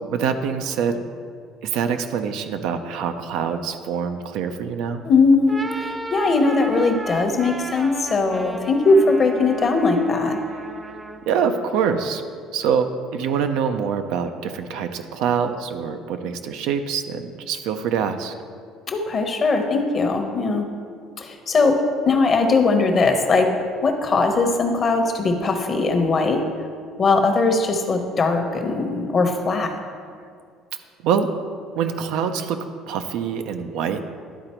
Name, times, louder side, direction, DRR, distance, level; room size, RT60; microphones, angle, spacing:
voice 1, 0.1-1.1 1.6-5.0 10.9-11.0 11.3-12.2 12.5-18.3 31.0-31.3 31.7-32.6 32.9-34.0, right 7 dB, 75° right, 7 dB, 0.5 m, -25 dB
voice 2, 5.0-10.4 18.9-20.7 21.2-21.8 22.0-23.5 23.8-26.4 27.0-29.7, left 3 dB, 35° left, 4 dB, 0.9 m, -20 dB
sound 1, 5.3-11.3, right 2 dB, 20° right, 0.4 m, -35 dB
11.5 x 3.9 x 4.4 m, 2.1 s
cardioid pair, 110°, 0 cm